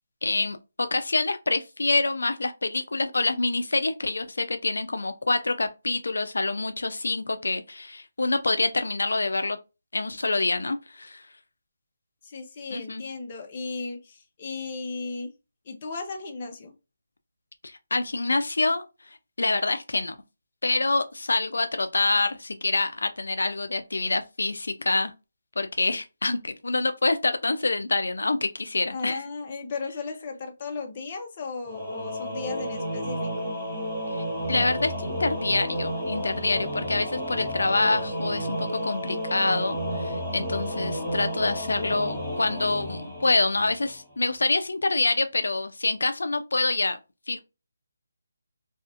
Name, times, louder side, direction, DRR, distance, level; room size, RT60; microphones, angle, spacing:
voice 1, 0.2-9.6 9.9-11.2 12.7-13.0 17.6-18.9 19.4-20.2 20.6-25.1 25.6-29.2 34.1-47.0 47.3-47.4, left 3 dB, 85° left, 0.3 m, -26 dB
voice 2, 12.2-15.3 15.7-16.7 28.9-33.5, left 4 dB, 30° left, 0.6 m, -35 dB
Singing / Musical instrument, 31.7-44.1, equal, 5° right, 1.0 m, -31 dB
2.4 x 2.4 x 2.5 m
hypercardioid pair, 165°, 0 cm